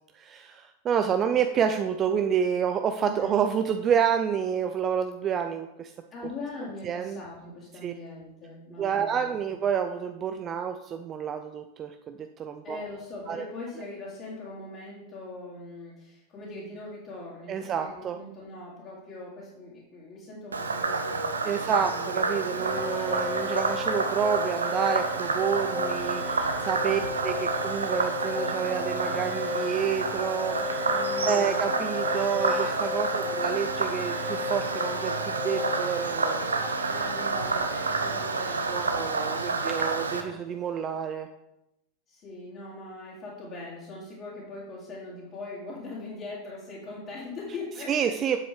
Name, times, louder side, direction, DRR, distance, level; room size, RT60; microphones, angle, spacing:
voice 1, 0.1-5.9 6.9-7.2 7.8-7.9 8.8-12.8 13.3-13.4 17.5-18.2 21.5-30.8 31.2-36.6 38.7-41.3 47.9-48.4, right 7 dB, 30° right, 7 dB, 0.5 m, -29 dB
voice 2, 3.0-3.3 6.1-9.5 12.6-22.7 26.9-27.2 30.8-31.6 33.1-33.7 36.8-40.1 42.1-48.1, left 2 dB, 35° left, -7 dB, 2.9 m, -41 dB
Frog, 20.5-40.2, right 3 dB, 75° right, 0.8 m, -29 dB
sound 1, 22.6-40.6, left 4 dB, 10° right, 1.7 m, -36 dB
9.3 x 7.8 x 3.5 m, 0.88 s
figure-of-eight pair, 90°, 0 cm